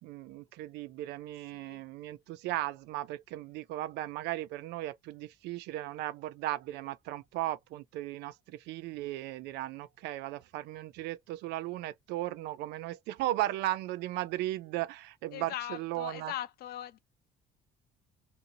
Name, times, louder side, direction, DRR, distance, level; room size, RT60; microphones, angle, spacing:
voice 1, 0.0-16.3, right 15 dB, 85° right, 0.4 m, -36 dB
voice 2, 15.3-17.0, left 12 dB, 65° left, 0.5 m, -40 dB
2.7 x 2.6 x 2.6 m
cardioid pair, 110°, 17 cm